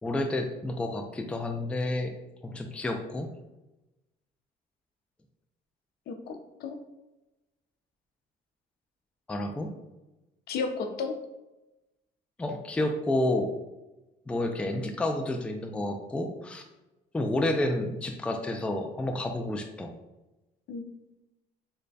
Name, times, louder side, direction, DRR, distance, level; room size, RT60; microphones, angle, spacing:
voice 1, 0.0-2.1 2.4-3.3 9.3-9.7 12.4-13.5 14.3-16.6 17.1-19.9, left 1 dB, 5° left, 4 dB, 0.3 m, -30 dB
voice 2, 6.1-6.8 10.5-11.2 20.7-20.9, left 4 dB, 65° left, 5 dB, 0.5 m, -33 dB
3.2 x 2.2 x 3.9 m, 1.0 s
cardioid pair, 110°, 17 cm